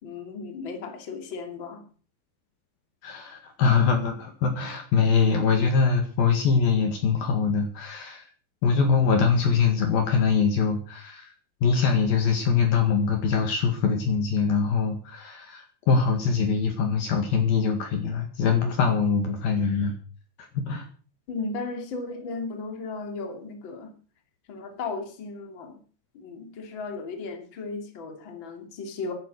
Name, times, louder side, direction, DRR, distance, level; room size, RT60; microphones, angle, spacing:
voice 1, 0.0-1.8 21.3-23.9 24.5-25.8 26.1-29.1, left 4 dB, 30° left, 4 dB, 2.9 m, -35 dB
voice 2, 3.0-8.3 8.6-11.3 11.6-19.9 20.5-20.9, left 5 dB, 60° left, 4 dB, 3.3 m, -23 dB
15.0 x 11.0 x 6.4 m, 0.40 s
omnidirectional pair, 5.2 m